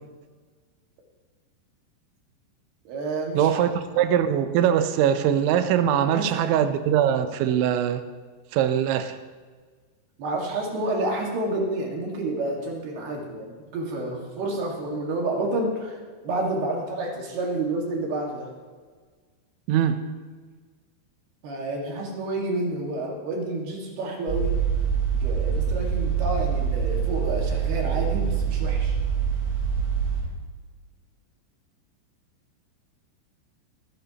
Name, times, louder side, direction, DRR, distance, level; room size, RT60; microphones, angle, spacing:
voice 1, 2.9-3.6 6.1-6.5 10.2-18.5 21.4-24.5 25.2-29.0, right 2 dB, 65° right, 0 dB, 3.7 m, -29 dB
voice 2, 3.4-8.0 8.5-9.1 19.7-20.0, right 9 dB, 85° right, 10 dB, 3.1 m, -22 dB
sound 1, 24.3-30.2, right 7 dB, 30° right, 3.4 m, -25 dB
22.0 x 10.5 x 2.9 m, 1.5 s
omnidirectional pair, 5.2 m